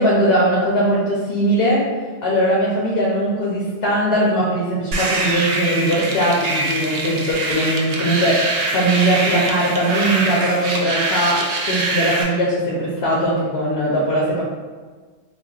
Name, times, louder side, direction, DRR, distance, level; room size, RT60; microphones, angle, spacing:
voice 1, 0.0-1.8 2.2-14.4, right 1 dB, 70° left, -5 dB, 0.8 m, -20 dB
sound 1, 4.9-12.2, right 2 dB, 65° right, 0.7 m, -23 dB
3.8 x 2.3 x 2.3 m, 1.4 s
omnidirectional pair, 1.1 m